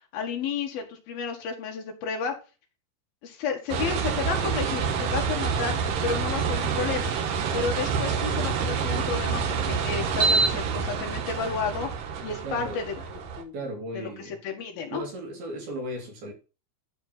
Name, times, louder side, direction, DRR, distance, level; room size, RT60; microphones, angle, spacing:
voice 1, 0.1-2.3 3.2-5.8 6.0-7.1 7.5-11.9 12.2-13.5 13.9-15.0, left 6 dB, 55° left, 3.2 m, -32 dB
sound 1, 3.7-13.4, right 5 dB, 75° right, 2.1 m, -27 dB
voice 2, 12.4-12.8 13.5-14.4 14.9-16.3, right 1 dB, 55° right, 3.9 m, -35 dB
12.5 x 5.1 x 5.8 m
omnidirectional pair, 5.8 m